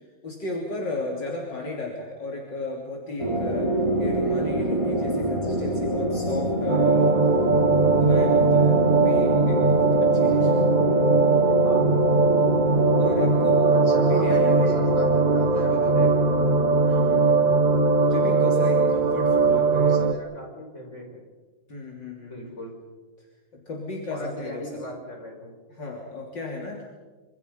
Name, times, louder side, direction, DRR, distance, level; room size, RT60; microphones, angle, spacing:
voice 1, 0.2-3.7 4.0-7.2 7.6-10.7 13.0-13.7 14.0-14.7 15.5-16.0 16.8-17.4 18.0-20.0 21.7-22.5 23.7-24.8 25.8-26.8, left 2 dB, 60° left, -1 dB, 3.8 m, -34 dB
sound 1, 3.2-19.7, equal, 15° right, 5.4 m, -27 dB
sound 2, 6.7-20.1, right 4 dB, 30° right, 0.8 m, -20 dB
voice 2, 13.7-16.4 19.4-21.2 22.2-22.7 24.1-25.5, left 1 dB, 35° left, 1 dB, 5.9 m, -38 dB
27.5 x 27.0 x 5.5 m, 1.3 s
omnidirectional pair, 2.3 m